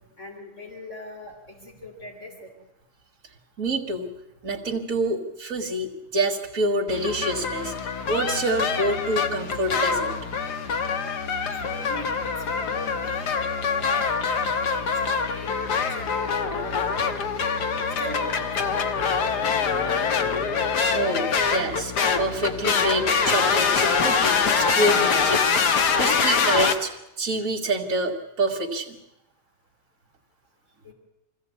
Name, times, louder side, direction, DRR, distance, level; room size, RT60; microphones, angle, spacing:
voice 1, 0.2-2.5 11.6-14.2 14.7-15.5 15.9-16.1 16.6-17.4 18.0-19.3 19.6-19.9 24.6-25.0 30.8-30.9, right 1 dB, 45° left, -1 dB, 3.6 m, -40 dB
voice 2, 3.6-4.1 4.4-10.1 17.7-18.0 20.9-26.9 27.2-29.0, right 1 dB, 55° right, -2 dB, 2.3 m, -27 dB
sound 1, 6.9-26.7, left 5 dB, 85° left, 1.9 m, -24 dB
23.5 x 15.0 x 8.2 m, 0.88 s
omnidirectional pair, 1.7 m